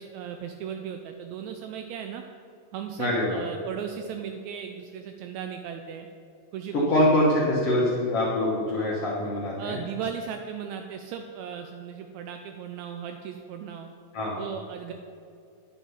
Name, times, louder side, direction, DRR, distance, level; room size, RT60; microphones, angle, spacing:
voice 1, 0.0-2.2 2.7-6.1 6.5-7.2 9.6-13.9 14.4-14.9, right 8 dB, 80° right, 5 dB, 1.8 m, -37 dB
voice 2, 3.0-3.4 6.7-9.8 14.1-14.4, left 1 dB, 60° left, -5 dB, 2.0 m, -24 dB
9.1 x 6.3 x 5.5 m, 2.5 s
omnidirectional pair, 3.3 m